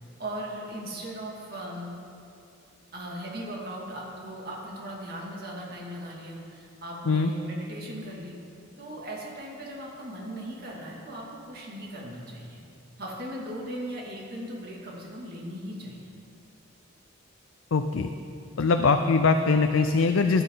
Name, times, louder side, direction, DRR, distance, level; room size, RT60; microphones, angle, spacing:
voice 1, 0.2-2.0 2.9-8.3 8.8-12.6 13.0-16.1, right 1 dB, 50° right, -3 dB, 2.7 m, -38 dB
voice 2, 17.7-18.1 18.6-20.4, left 4 dB, 80° left, 7 dB, 0.5 m, -22 dB
16.5 x 11.0 x 4.0 m, 2.6 s
head